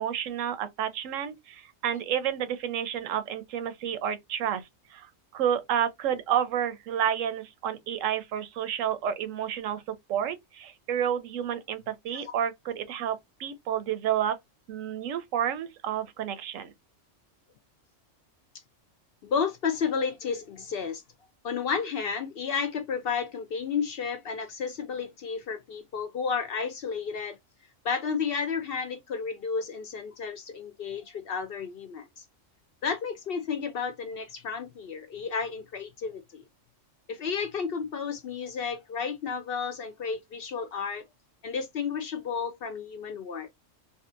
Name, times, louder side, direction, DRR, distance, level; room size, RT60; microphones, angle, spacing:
voice 1, 0.0-9.8 10.1-14.4 14.7-16.7, right 9 dB, 80° right, 0.9 m, -30 dB
voice 2, 19.2-21.0 21.4-27.4 27.8-32.2 32.8-36.4 37.1-41.0 41.4-43.5, left 6 dB, 60° left, 0.6 m, -32 dB
2.7 x 2.4 x 2.4 m
omnidirectional pair, 1.3 m